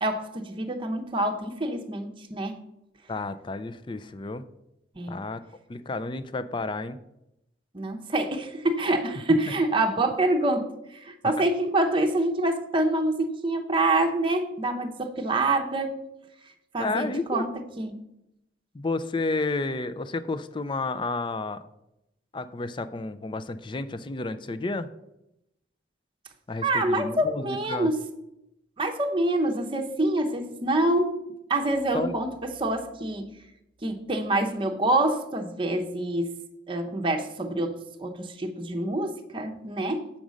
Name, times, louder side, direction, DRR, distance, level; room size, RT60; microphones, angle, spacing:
voice 1, 0.0-2.6 5.0-5.2 7.7-10.7 11.0-16.0 16.7-17.5 17.8-18.0 26.6-28.0 28.8-31.2 31.5-33.3 33.8-36.4 36.7-40.1, right 2 dB, 30° right, 4 dB, 0.8 m, -26 dB
voice 2, 3.1-4.4 5.1-5.4 5.7-7.0 11.2-11.4 16.8-17.4 18.7-21.6 22.3-24.9 26.5-27.9 31.9-32.2, left 3 dB, 25° left, 13 dB, 0.4 m, -31 dB
7.2 x 5.2 x 6.3 m, 0.86 s
head